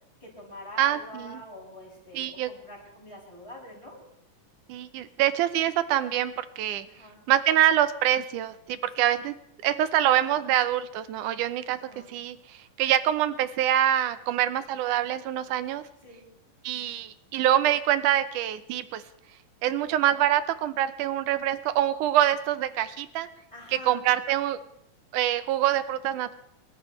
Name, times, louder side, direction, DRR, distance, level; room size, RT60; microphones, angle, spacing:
voice 1, 0.2-4.0 6.8-7.2 9.0-9.2 11.7-12.1 16.0-16.3 23.5-24.0, left 1 dB, 10° left, -5 dB, 7.5 m, -45 dB
voice 2, 0.8-1.4 2.1-2.5 4.7-6.9 7.3-9.3 9.6-11.8 12.1-12.4 12.8-15.8 16.6-19.0 19.6-23.3 23.8-24.6 25.1-26.3, right 12 dB, 80° right, 13 dB, 2.3 m, -25 dB
28.5 x 12.5 x 3.3 m, 0.77 s
omnidirectional pair, 3.7 m